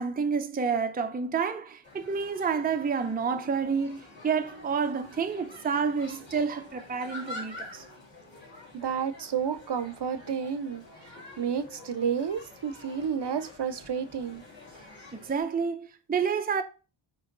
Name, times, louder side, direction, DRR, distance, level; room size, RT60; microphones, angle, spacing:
voice 1, 0.0-7.8 15.1-16.6, right 5 dB, 20° right, 0.5 m, -29 dB
sound 1, 1.8-15.4, left 2 dB, 20° left, 3.6 m, -47 dB
voice 2, 8.7-10.8 11.4-14.4, right 7 dB, 55° right, 0.7 m, -31 dB
9.1 x 3.1 x 3.8 m
wide cardioid pair, 150°, 50 cm